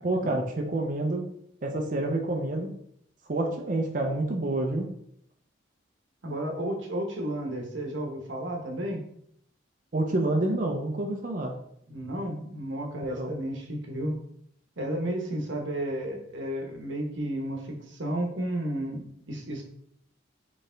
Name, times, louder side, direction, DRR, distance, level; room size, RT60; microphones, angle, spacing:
voice 1, 0.0-1.2 1.6-2.7 3.3-4.9 9.9-11.6 13.1-13.3, right 2 dB, 40° right, 2 dB, 0.5 m, -28 dB
voice 2, 6.2-9.0 11.9-14.1 14.8-19.6, right 1 dB, 75° right, 2 dB, 1.0 m, -32 dB
4.2 x 3.3 x 3.8 m, 0.69 s
head